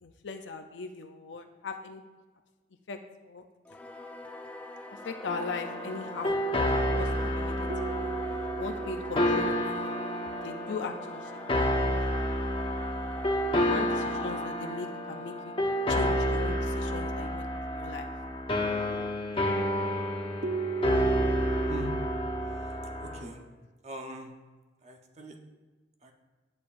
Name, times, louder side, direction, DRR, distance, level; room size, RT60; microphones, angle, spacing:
voice 1, 0.0-2.0 2.9-3.0 3.2-3.4 4.9-8.1 8.6-9.7 10.3-11.9 13.6-15.5 15.9-18.1, left 4 dB, 70° left, 6 dB, 0.5 m, -39 dB
Singing / Musical instrument, 3.6-16.5, left 2 dB, 5° left, 0.4 m, -45 dB
sound 1, 5.3-23.2, equal, 30° left, 0.8 m, -30 dB
sound 2, 7.7-11.8 20.4-22.6, right 4 dB, 65° right, 0.5 m, -37 dB
voice 2, 23.0-23.4 23.8-24.3 24.8-25.4 26.0-26.1, right 1 dB, 35° right, 3 dB, 0.9 m, -41 dB
9.6 x 8.6 x 2.6 m, 1.3 s
head